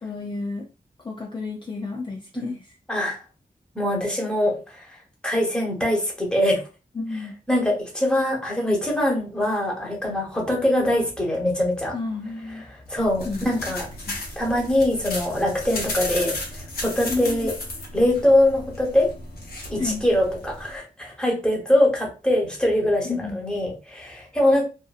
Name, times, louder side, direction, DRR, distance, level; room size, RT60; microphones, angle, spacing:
voice 1, 0.0-0.7 1.0-2.6 7.0-7.3 11.9-12.7 13.2-13.5 14.1-14.2 17.1-17.5 19.8-20.0 23.0-23.4, left 3 dB, 30° left, -1 dB, 0.4 m, -31 dB
voice 2, 2.9-3.2 3.7-5.0 5.2-6.6 7.5-11.9 12.6-13.9 14.4-17.5 17.9-19.1 19.7-24.6, left 1 dB, 5° left, -2 dB, 0.9 m, -23 dB
sound 1, 12.9-20.8, left 1 dB, 90° left, 0.9 m, -34 dB
2.6 x 2.5 x 2.3 m, 0.33 s
wide cardioid pair, 125°, 15 cm